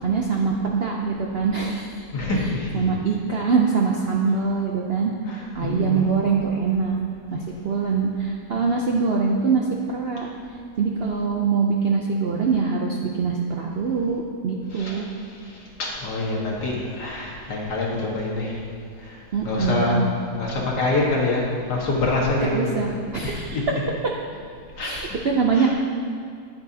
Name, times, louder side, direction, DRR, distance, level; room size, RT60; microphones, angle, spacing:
voice 1, 0.0-1.9 2.7-7.0 7.3-10.3 10.8-15.1 19.3-20.1 22.4-23.6 24.8-25.7, right 5 dB, 65° right, -1 dB, 0.6 m, -23 dB
voice 2, 2.1-2.8 5.3-6.2 14.7-15.0 15.8-18.6 19.0-19.2 19.4-22.7 23.2-23.6 24.8-25.0 25.5-25.7, left 2 dB, 75° left, -3 dB, 2.1 m, -26 dB
10.5 x 8.8 x 2.8 m, 2.3 s
omnidirectional pair, 1.8 m